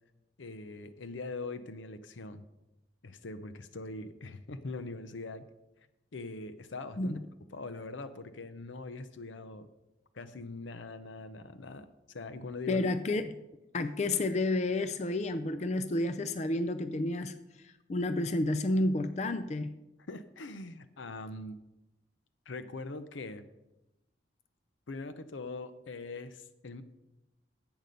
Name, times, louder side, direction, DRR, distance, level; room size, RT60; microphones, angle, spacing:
voice 1, 0.4-2.5 3.0-5.4 6.1-7.2 7.5-9.7 10.1-12.9 20.1-21.6 22.5-23.4 24.9-26.8, left 3 dB, 85° left, 11 dB, 0.7 m, -42 dB
voice 2, 12.7-13.3 13.7-17.4 17.9-19.7, left 2 dB, 35° left, 11 dB, 0.4 m, -30 dB
11.0 x 8.0 x 5.2 m, 0.97 s
head